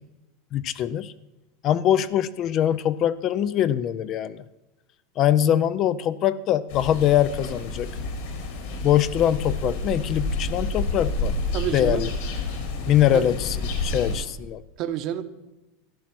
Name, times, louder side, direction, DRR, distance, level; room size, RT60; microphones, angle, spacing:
voice 1, 0.5-1.1 1.6-4.4 5.2-7.9 8.8-11.4 11.7-12.1 12.9-13.6 13.8-14.6, left 11 dB, 35° left, 0.5 m, -22 dB
sound 1, 6.7-14.2, left 2 dB, 65° left, 3.5 m, -29 dB
voice 2, 11.5-12.1 13.1-13.3 14.8-15.2, right 11 dB, 40° right, 1.0 m, -29 dB
14.0 x 10.5 x 6.0 m
supercardioid pair, 155°, 0 cm